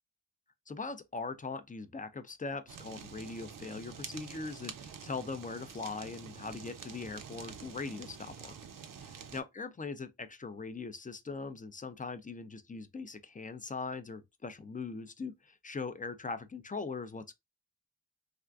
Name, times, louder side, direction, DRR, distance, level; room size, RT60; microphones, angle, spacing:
voice 1, 0.7-8.5 9.0-17.4, left 4 dB, 25° left, 0.4 m, -41 dB
Fire, 2.7-9.4, right 7 dB, 70° right, 0.6 m, -47 dB
3.4 x 2.4 x 2.2 m
wide cardioid pair, 95°, 34 cm